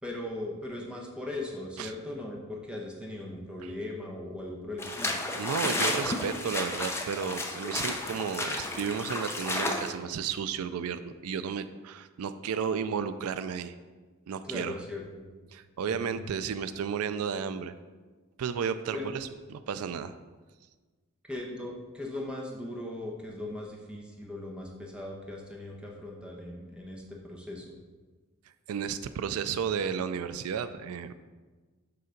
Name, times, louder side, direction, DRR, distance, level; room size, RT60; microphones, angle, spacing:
voice 1, 0.0-5.2 14.4-15.3 15.9-16.3 18.9-19.1 21.3-27.7, left 1 dB, 5° right, -2 dB, 0.9 m, -39 dB
sound 1, 4.8-9.9, left 2 dB, 10° left, 0.5 m, -32 dB
voice 2, 5.4-13.7 14.3-14.8 15.5-17.7 18.4-20.1 28.7-31.1, right 7 dB, 90° right, 12 dB, 0.4 m, -33 dB
6.8 x 3.9 x 5.1 m, 1.3 s
head